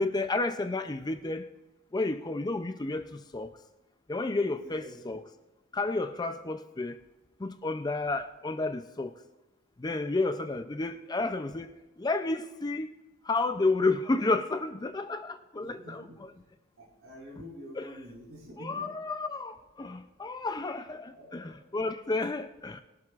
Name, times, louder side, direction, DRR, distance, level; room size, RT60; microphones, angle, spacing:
voice 1, 0.0-1.5 1.9-3.5 4.1-5.2 5.7-7.0 7.4-9.1 9.8-11.7 12.0-12.9 13.3-16.3 17.7-18.0 18.6-22.8, left 3 dB, 20° left, 0.4 m, -31 dB
voice 2, 4.6-5.0 15.6-16.1 16.8-18.9 21.1-21.4, equal, 60° right, 5.0 m, -47 dB
21.5 x 12.0 x 2.5 m
head